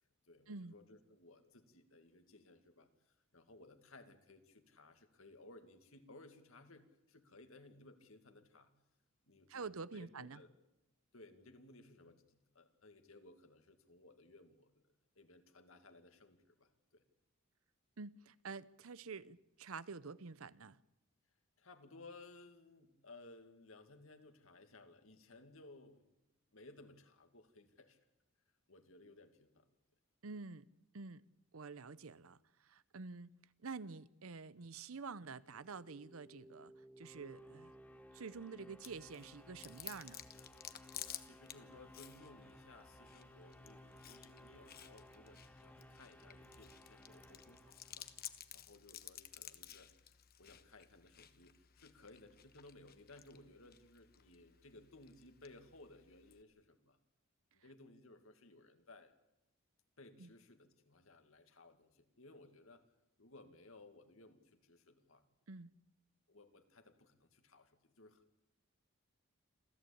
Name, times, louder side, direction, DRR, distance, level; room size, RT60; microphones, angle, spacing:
voice 1, 0.3-8.7 9.3-10.5 11.1-14.8 15.2-17.0 21.6-26.1 26.5-28.0 28.7-29.7 41.0-49.9 50.4-57.0 57.5-59.1 60.0-62.8 63.2-65.2 66.3-68.3, left 2 dB, 70° left, 2.3 m, -60 dB
voice 2, 9.5-10.4 18.0-20.8 30.2-30.7 30.9-31.2 31.5-33.4 33.6-37.7 38.1-40.3 60.2-60.3 65.5-65.7, right 4 dB, 75° right, 0.7 m, -48 dB
sound 1, 35.4-48.6, equal, 5° left, 2.2 m, -59 dB
Chewing mastication, 38.8-56.4, left 11 dB, 45° left, 1.1 m, -55 dB
27.5 x 14.5 x 8.6 m
head